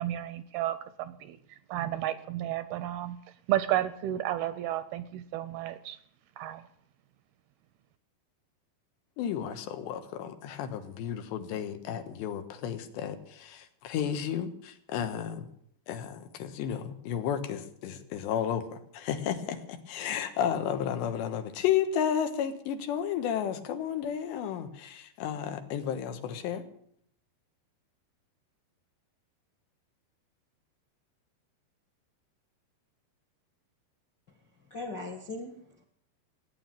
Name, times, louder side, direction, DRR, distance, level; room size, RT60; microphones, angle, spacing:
voice 1, 0.0-1.4 1.7-3.2 3.5-6.0 6.4-6.6, right 13 dB, 80° right, 14 dB, 2.4 m, -32 dB
voice 2, 9.2-15.4 15.9-26.6, left 9 dB, 80° left, 8 dB, 3.6 m, -32 dB
voice 3, 34.7-35.8, left 2 dB, 60° left, 4 dB, 1.1 m, -40 dB
16.5 x 9.7 x 9.0 m, 0.67 s
omnidirectional pair, 4.9 m